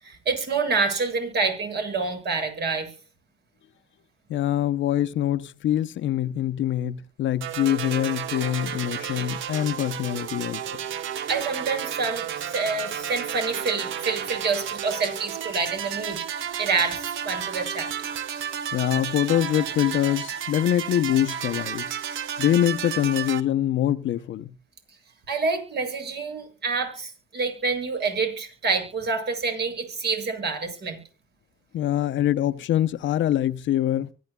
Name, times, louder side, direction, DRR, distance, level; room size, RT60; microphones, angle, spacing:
voice 1, 0.0-2.9 11.3-16.2 16.6-17.9 25.3-31.0, right 4 dB, 55° right, 7.2 m, -27 dB
voice 2, 4.3-10.6 18.7-21.9 22.4-24.5 31.7-34.1, left 11 dB, 70° left, 0.7 m, -24 dB
sound 1, 7.4-23.4, right 9 dB, 80° right, 1.1 m, -32 dB
24.5 x 10.5 x 2.3 m
cardioid pair, 90°, 20 cm